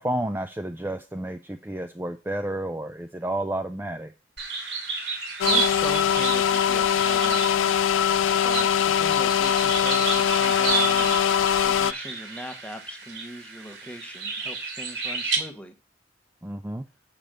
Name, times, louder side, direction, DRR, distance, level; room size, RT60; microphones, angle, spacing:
voice 1, 0.0-4.1 16.4-16.8, right 1 dB, 10° right, 7 dB, 0.4 m, -31 dB
sound 1, 4.4-15.4, right 5 dB, 60° right, 2.3 m, -31 dB
sound 2, 5.4-11.9, left 9 dB, 85° left, 0.4 m, -22 dB
voice 2, 5.5-7.7 8.4-11.2 11.6-15.7, equal, 5° left, 6 dB, 1.1 m, -39 dB
7.4 x 5.2 x 6.6 m, 0.33 s
head